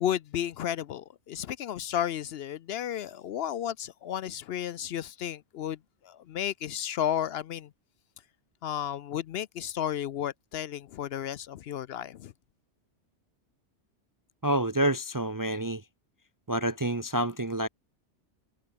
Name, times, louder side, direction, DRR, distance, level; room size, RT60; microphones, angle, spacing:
voice 1, 0.0-5.8 6.0-7.7 8.6-12.3, left 10 dB, 65° left, 0.7 m, -33 dB
voice 2, 14.4-15.8 16.5-17.7, right 1 dB, 25° right, 0.4 m, -28 dB
omnidirectional pair, 1.2 m